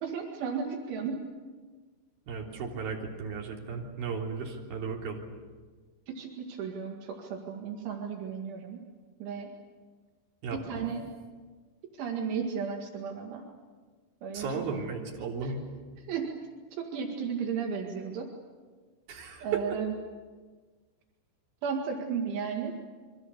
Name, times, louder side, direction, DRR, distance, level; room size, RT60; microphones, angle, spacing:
voice 1, 0.0-1.2 6.1-8.8 9.2-9.5 10.5-11.0 12.0-13.5 14.2-14.7 15.4-15.5 16.0-16.3 16.8-18.3 19.4-19.9 21.6-22.7, right 6 dB, 75° right, 1 dB, 4.3 m, -34 dB
voice 2, 2.3-5.2 10.4-10.9 14.3-15.6 19.1-19.6, right 5 dB, 55° right, -1 dB, 5.0 m, -35 dB
29.0 x 24.0 x 6.9 m, 1.4 s
omnidirectional pair, 5.4 m